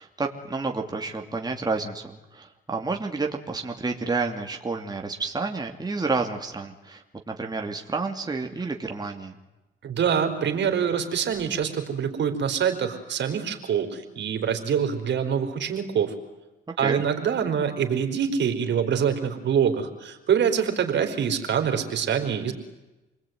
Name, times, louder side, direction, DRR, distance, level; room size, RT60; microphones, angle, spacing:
voice 1, 0.0-9.4 16.8-17.0, right 3 dB, 20° right, 2 dB, 2.8 m, -30 dB
voice 2, 9.8-16.1 16.8-22.5, right 7 dB, 65° right, 5 dB, 4.4 m, -25 dB
28.5 x 20.5 x 9.5 m, 1.0 s
cardioid pair, 90°, 20 cm